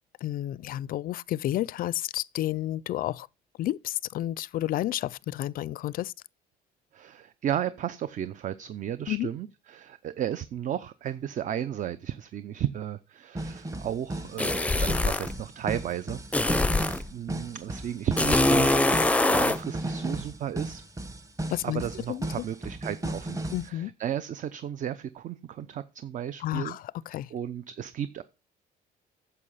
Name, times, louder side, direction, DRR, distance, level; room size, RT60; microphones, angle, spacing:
voice 1, 0.2-3.3 3.6-6.1 9.1-9.3 21.5-21.8 22.1-22.3 23.5-23.9 26.4-27.3, left 14 dB, 55° left, 0.4 m, -31 dB
voice 2, 6.9-16.7 17.1-20.8 21.6-26.8 27.3-28.2, right 10 dB, 50° right, 0.7 m, -34 dB
sound 1, 11.1-11.2 13.3-23.7, right 1 dB, 20° right, 1.3 m, -36 dB
sound 2, 14.4-15.3 16.3-17.0 18.2-19.6, left 2 dB, 10° left, 0.5 m, -23 dB
9.8 x 6.9 x 5.6 m
cardioid pair, 110°, 17 cm